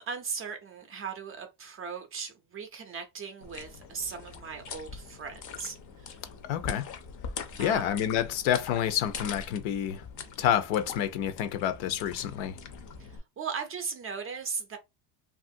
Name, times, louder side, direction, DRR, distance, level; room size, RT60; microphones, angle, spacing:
voice 1, 0.0-6.2 7.6-7.9 13.0-14.8, right 5 dB, 30° right, 0.4 m, -38 dB
sound 1, 3.4-13.2, left 5 dB, 45° left, 0.5 m, -43 dB
voice 2, 6.5-6.8 7.6-10.0 10.4-12.6, left 10 dB, 80° left, 0.7 m, -28 dB
2.9 x 2.4 x 2.6 m
cardioid pair, 150°, 46 cm